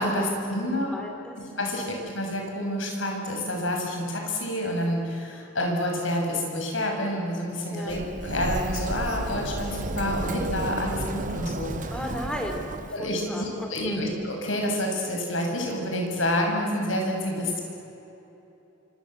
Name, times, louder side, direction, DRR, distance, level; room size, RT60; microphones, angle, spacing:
voice 1, 0.0-1.0 1.6-11.9 12.9-17.6, left 1 dB, 80° left, 1 dB, 7.0 m, -28 dB
voice 2, 0.9-1.4 1.7-1.9 7.7-8.0 11.9-14.0, equal, 5° left, 2 dB, 4.2 m, -35 dB
Sliding door, 7.9-12.9, right 2 dB, 40° right, 1.0 m, -32 dB
27.5 x 25.0 x 8.0 m, 3.0 s
head